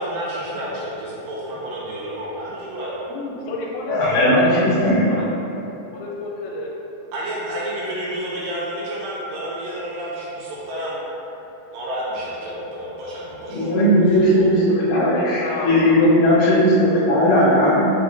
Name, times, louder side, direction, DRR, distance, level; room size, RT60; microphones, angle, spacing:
voice 1, 0.0-2.9 7.1-11.0 11.7-13.7 14.0-14.6, right 1 dB, 80° right, -6 dB, 2.1 m, -30 dB
voice 2, 3.1-5.3 5.9-6.7 14.9-15.9, left 2 dB, 85° left, -3 dB, 2.4 m, -30 dB
voice 3, 3.9-5.0 13.5-17.8, equal, 70° left, -11 dB, 0.9 m, -17 dB
5.8 x 2.1 x 3.8 m, 3.0 s
omnidirectional pair, 4.3 m